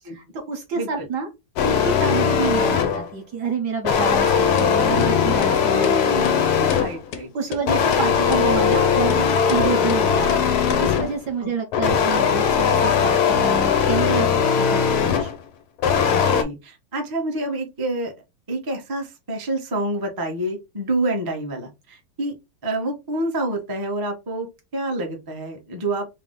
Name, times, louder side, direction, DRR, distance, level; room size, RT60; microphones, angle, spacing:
voice 1, 0.0-1.3 1.6-5.9 6.6-6.7 7.3-15.3, right 5 dB, 60° right, 3 dB, 1.2 m, -28 dB
sound 1, 1.6-3.1 3.9-7.1 7.7-11.2 11.7-15.4 15.8-16.4, left 7 dB, 85° left, 1.7 m, -19 dB
sound 2, 4.2-4.3 4.6-4.7 5.0-5.1 5.4-5.6 5.8-6.0 6.3-6.4 6.7-6.8 7.1-7.2 7.5-7.6 7.9-8.1 8.3-8.5 8.7-8.8 9.1-9.2 9.5-9.6 9.9-10.0 10.3-10.4 10.7-10.8, left 8 dB, 70° left, 1.0 m, -30 dB
voice 2, 5.7-6.5 6.8-7.3 9.7-9.9 11.4-11.5 11.8-12.0 16.1-18.1 18.5-22.3 22.6-26.1, right 1 dB, 30° right, 1 dB, 0.4 m, -28 dB
4.7 x 2.0 x 3.7 m, 0.24 s
omnidirectional pair, 2.3 m